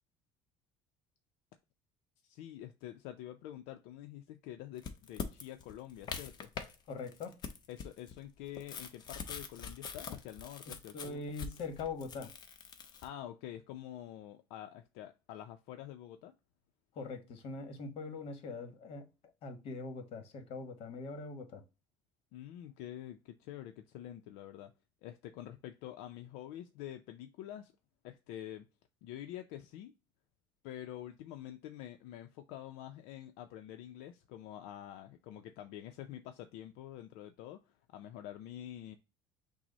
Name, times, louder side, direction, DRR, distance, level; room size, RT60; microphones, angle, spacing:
voice 1, 2.2-6.5 7.7-11.3 13.0-16.3 22.3-24.7 25.0-27.7 28.0-28.7 29.0-29.9 30.6-39.0, left 12 dB, 80° left, 0.5 m, -47 dB
Soda bottle sticker, 4.8-6.7 7.1-13.1, left 6 dB, 40° left, 0.7 m, -43 dB
voice 2, 6.9-7.4 10.7-12.3 16.9-19.1 19.4-21.6, left 4 dB, 55° left, 1.2 m, -42 dB
6.0 x 2.0 x 3.9 m
cardioid pair, 130°, 11 cm